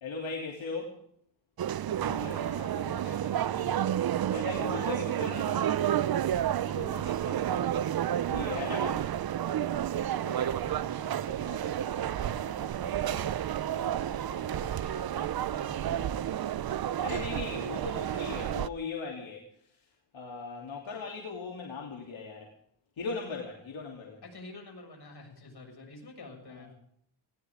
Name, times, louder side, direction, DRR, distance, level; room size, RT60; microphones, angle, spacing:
voice 1, 0.0-0.9 4.3-5.8 8.3-9.1 17.0-19.5 20.1-22.5 23.0-24.2 26.6-26.7, left 4 dB, 75° left, -1 dB, 3.2 m, -38 dB
sound 1, 1.6-18.7, right 11 dB, 50° right, 0.5 m, -31 dB
voice 2, 1.8-3.7 6.6-7.7 10.2-16.2 24.2-26.7, left 2 dB, 55° left, 2 dB, 7.0 m, -46 dB
20.5 x 18.0 x 3.7 m, 0.69 s
wide cardioid pair, 110°, 47 cm